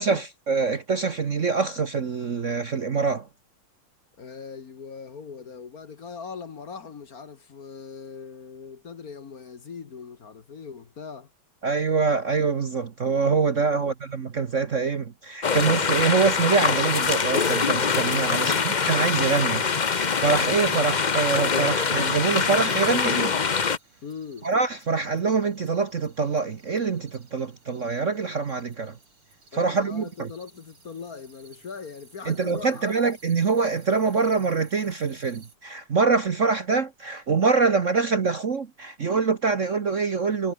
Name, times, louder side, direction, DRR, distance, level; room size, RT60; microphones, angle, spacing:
voice 1, 0.0-3.3 11.6-23.3 24.4-29.0 29.5-30.3 32.2-40.5, right 4 dB, 45° right, 1.2 m, -25 dB
voice 2, 4.2-11.3 13.6-13.9 18.3-18.7 24.0-24.5 29.5-32.9, left 5 dB, 45° left, 1.7 m, -40 dB
sound 1, 15.4-23.8, left 5 dB, 80° left, 0.4 m, -24 dB
sound 2, 18.0-35.6, right 4 dB, 75° right, 6.2 m, -56 dB
omnidirectional pair, 2.4 m